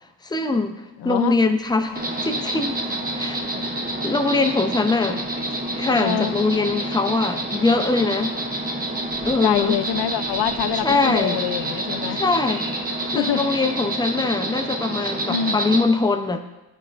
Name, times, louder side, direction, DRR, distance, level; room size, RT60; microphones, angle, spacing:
voice 1, 0.2-2.8 3.1-3.4 4.0-5.2 5.8-8.4 9.2-9.8 10.8-11.4 12.1-12.7 13.0-16.4, left 3 dB, 10° left, 6 dB, 0.5 m, -22 dB
voice 2, 1.0-1.4 3.5-3.7 4.8-4.9 6.0-6.4 9.4-12.2 13.1-13.5 15.3-15.6, left 10 dB, 70° left, 12 dB, 0.5 m, -25 dB
Bird / Traffic noise roadway noise, 1.6-14.3, left 1 dB, 50° left, 2.0 m, -47 dB
Insect, 2.0-15.8, right 1 dB, 20° right, 0.7 m, -28 dB
12.0 x 4.4 x 2.5 m, 1.0 s
cardioid pair, 90°, 42 cm